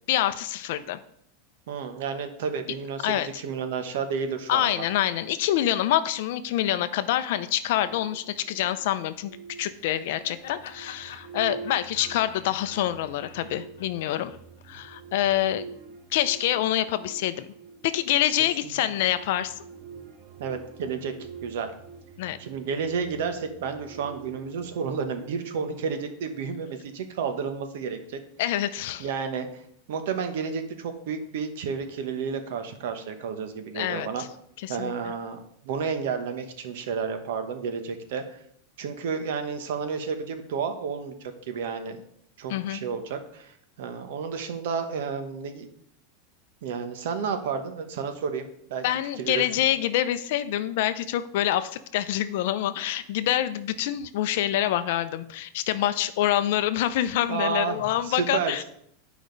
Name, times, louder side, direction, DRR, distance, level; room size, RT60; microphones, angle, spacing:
voice 1, 0.1-1.0 3.0-3.3 4.5-14.3 14.7-15.7 16.1-17.5 17.8-19.5 22.2-22.4 28.4-29.1 33.7-34.1 34.6-34.9 42.5-42.8 48.8-58.6, left 12 dB, 55° left, 12 dB, 0.5 m, -26 dB
voice 2, 1.7-4.8 18.8-18.9 20.4-21.1 21.4-21.7 22.4-28.2 29.0-29.6 29.9-34.2 34.7-35.4 35.6-38.4 38.8-42.0 42.4-45.7 46.6-48.8 49.2-49.4 57.3-58.6, right 6 dB, 65° right, 8 dB, 1.1 m, -31 dB
sound 1, 7.8-26.7, right 6 dB, 30° right, 0.7 m, -46 dB
Laughter, 9.6-14.8, left 8 dB, 80° left, 0.9 m, -47 dB
10.5 x 5.0 x 3.9 m, 0.70 s
supercardioid pair, 170°, 0 cm